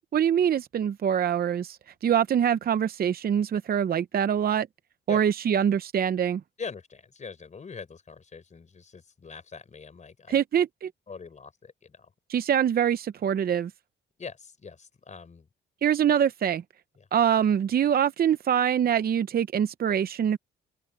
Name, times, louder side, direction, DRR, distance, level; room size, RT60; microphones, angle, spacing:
voice 1, 0.1-4.7 5.1-6.4 10.3-10.9 12.3-13.7 15.8-16.6 17.1-20.4, right 9 dB, 55° right, 0.7 m, -24 dB
voice 2, 6.6-10.4 11.1-12.1 14.2-15.5 17.0-17.1, left 5 dB, 40° left, 4.3 m, -42 dB
cardioid pair, 85°, 19 cm